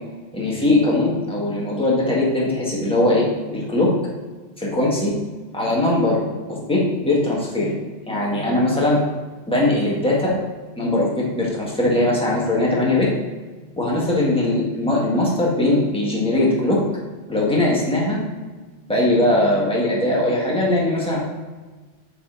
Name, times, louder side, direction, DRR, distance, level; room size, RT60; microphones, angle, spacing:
voice 1, 0.3-3.3 3.5-4.0 4.6-5.1 5.5-7.7 8.1-9.1 9.5-10.4 10.8-13.1 13.8-16.8 17.3-18.2 18.9-21.2, left 1 dB, 5° left, -5 dB, 1.8 m, -20 dB
7.1 x 5.8 x 4.0 m, 1.3 s
omnidirectional pair, 1.2 m